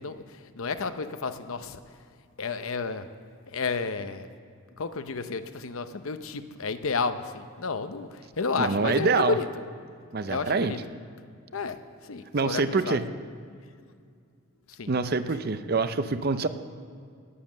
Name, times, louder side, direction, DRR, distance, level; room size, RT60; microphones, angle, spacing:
voice 1, 0.0-2.0 2.4-3.1 3.5-4.3 4.8-9.5 10.3-10.8 11.5-11.8 12.0-13.0 14.7-14.9, left 4 dB, 75° left, 10 dB, 0.8 m, -31 dB
voice 2, 8.6-9.4 10.1-10.7 12.3-13.0 14.9-16.5, right 4 dB, 45° right, 11 dB, 0.6 m, -25 dB
18.5 x 7.5 x 7.4 m, 2.2 s
head